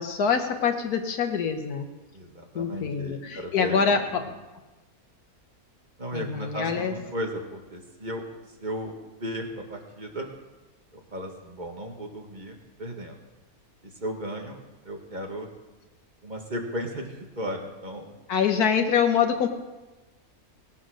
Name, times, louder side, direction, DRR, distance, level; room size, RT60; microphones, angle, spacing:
voice 1, 0.0-1.9 2.5-4.2 6.1-6.9 18.3-19.5, left 6 dB, 80° left, 6 dB, 1.7 m, -25 dB
voice 2, 2.1-4.3 6.0-8.9 9.2-10.3 10.9-13.2 13.8-14.6 14.8-15.5 16.2-18.2, equal, 30° right, 1 dB, 1.6 m, -35 dB
18.0 x 7.4 x 6.3 m, 1.1 s
omnidirectional pair, 1.6 m